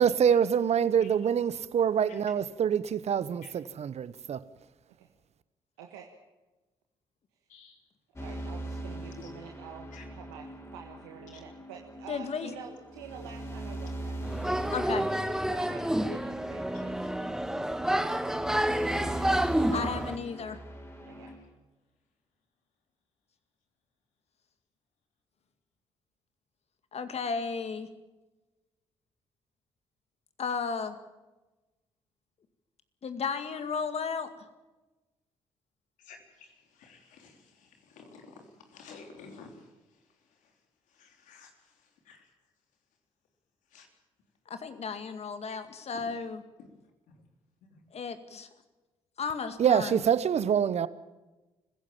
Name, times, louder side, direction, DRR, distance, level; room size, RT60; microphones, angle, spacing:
voice 1, 0.0-4.4 49.6-50.9, right 8 dB, 55° right, 1.0 m, -25 dB
voice 2, 3.4-3.7 7.5-7.8 8.9-9.5 9.9-10.1 11.3-11.4 12.2-12.6 16.7-16.8 21.3-21.5 36.0-42.3 43.7-43.9 45.5-45.6 45.9-46.1 46.6-46.7 47.1-47.2 47.7-47.9, left 5 dB, 75° left, 3.4 m, -52 dB
voice 3, 5.8-6.1 8.2-10.4 10.7-14.2 14.7-14.9 15.4-19.4 21.0-21.3, right 8 dB, 85° right, 1.4 m, -48 dB
sound 1, 8.2-21.4, right 1 dB, 20° left, 6.4 m, -41 dB
voice 4, 12.1-12.5 14.7-15.1 19.7-20.6 26.9-27.9 30.4-30.9 33.0-34.3 44.5-46.4 48.0-48.1 49.2-50.0, left 5 dB, 55° left, 2.2 m, -34 dB
sound 2, 14.2-20.2, right 1 dB, 5° right, 1.4 m, -29 dB
25.5 x 15.5 x 7.4 m
hypercardioid pair, 45°, 13 cm